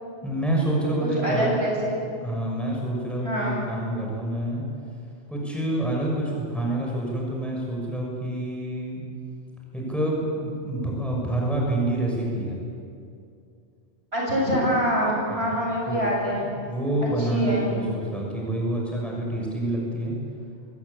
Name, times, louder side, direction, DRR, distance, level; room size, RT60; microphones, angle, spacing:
voice 1, 0.2-1.6 2.2-4.6 5.3-9.0 9.7-12.6 15.3-15.5 15.9-16.1 16.4-20.1, right 1 dB, ahead, -2 dB, 6.5 m, -27 dB
voice 2, 1.0-1.7 3.2-3.6 14.1-16.5 17.2-17.7, equal, 60° right, -3 dB, 7.7 m, -25 dB
25.0 x 19.5 x 8.8 m, 2.5 s
omnidirectional pair, 1.2 m